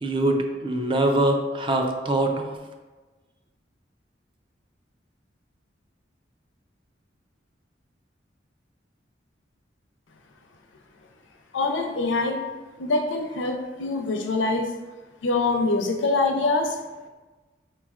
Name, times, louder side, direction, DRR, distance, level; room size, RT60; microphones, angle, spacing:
voice 1, 0.0-2.5, right 1 dB, 30° right, 3 dB, 0.4 m, -23 dB
voice 2, 11.5-12.4 12.8-14.7 15.2-16.8, left 3 dB, 80° left, 4 dB, 0.5 m, -24 dB
4.0 x 3.1 x 2.3 m, 1.2 s
head